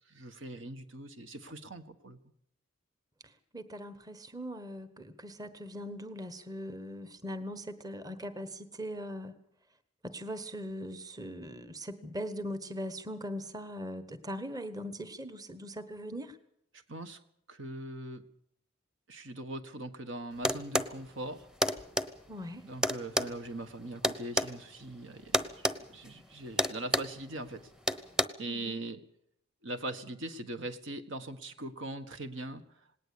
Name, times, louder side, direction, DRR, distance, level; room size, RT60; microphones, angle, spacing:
voice 1, 0.1-2.2 16.7-17.2 17.5-18.2 19.1-21.5 22.6-27.7 28.4-29.0 29.6-33.0, right 1 dB, 65° right, 9 dB, 1.6 m, -41 dB
voice 2, 3.2-9.4 10.0-16.4 22.3-22.6 28.5-28.8, equal, 20° right, 11 dB, 1.2 m, -40 dB
sound 1, 20.4-20.9 21.6-22.1 22.8-24.5 25.3-25.8 26.1-26.2 26.6-27.2 27.9-28.2, left 1 dB, 5° right, 0.9 m, -28 dB
19.0 x 18.5 x 8.5 m, 0.70 s
head